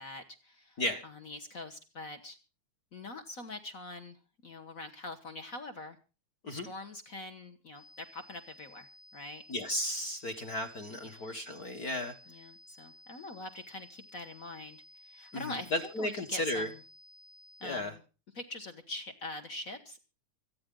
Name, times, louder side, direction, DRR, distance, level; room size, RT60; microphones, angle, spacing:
voice 1, 0.0-2.4 2.9-6.0 6.5-9.4 11.0-11.2 12.3-16.8 17.6-18.0 18.3-20.0, left 2 dB, 60° left, 8 dB, 0.8 m, -44 dB
sound 1, 7.7-17.7, left 1 dB, 85° left, 6.0 m, -56 dB
voice 2, 9.5-12.1 15.3-16.7 17.6-17.9, left 1 dB, 45° left, 5 dB, 1.3 m, -34 dB
25.5 x 9.7 x 3.8 m, 0.34 s
omnidirectional pair, 3.4 m